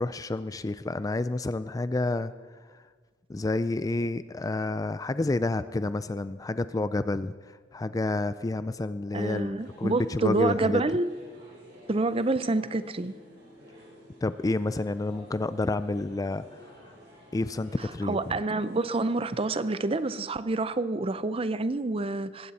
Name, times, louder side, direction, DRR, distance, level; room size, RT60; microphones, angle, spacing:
voice 1, 0.0-2.3 3.3-10.8 14.2-16.4 17.3-18.4, left 2 dB, 20° left, 13 dB, 0.3 m, -29 dB
voice 2, 9.1-11.1 11.9-13.2 18.0-22.5, right 2 dB, 30° right, 14 dB, 0.5 m, -28 dB
sound 1, 9.6-20.2, equal, 60° right, 5.3 m, -52 dB
20.0 x 16.0 x 4.2 m, 1.5 s
head